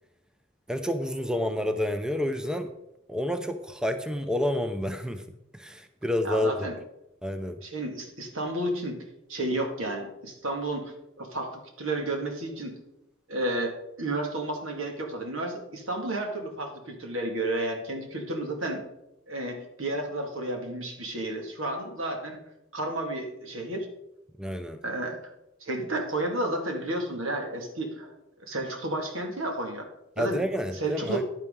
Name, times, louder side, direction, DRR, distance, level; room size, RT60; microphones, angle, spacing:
voice 1, 0.7-2.7 3.1-5.2 5.5-6.7 7.2-7.6 24.4-24.8 30.2-31.2, left 1 dB, 5° right, 8 dB, 0.5 m, -29 dB
voice 2, 6.2-6.8 7.6-9.0 9.3-12.8 13.3-18.8 19.3-22.4 22.7-23.9 24.8-25.2 25.6-28.1 28.4-29.9 30.2-30.4 30.8-31.2, right 1 dB, 80° right, 3 dB, 2.1 m, -32 dB
10.5 x 9.5 x 3.8 m, 0.84 s
head